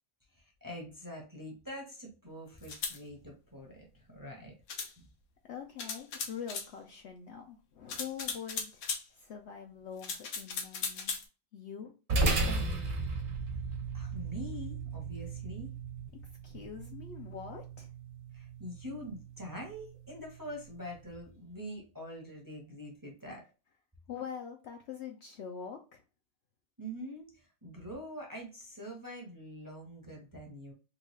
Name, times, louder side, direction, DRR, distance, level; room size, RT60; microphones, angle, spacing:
voice 1, 0.3-4.5 5.0-5.1 13.9-15.7 18.3-23.4 26.8-30.7, equal, 20° right, 0 dB, 0.8 m, -44 dB
sound 1, 2.6-3.0 4.7-4.9 5.8-6.7 7.9-9.0 10.0-11.2, left 5 dB, 80° left, 1.2 m, -37 dB
voice 2, 5.4-8.8 9.1-11.1 11.5-11.9 12.5-12.9 16.4-17.9 24.1-26.0, left 7 dB, 65° left, 2 dB, 0.7 m, -44 dB
sound 2, 12.1-20.8, right 2 dB, 55° right, 1.4 m, -36 dB
3.8 x 2.4 x 3.1 m, 0.33 s
omnidirectional pair, 1.5 m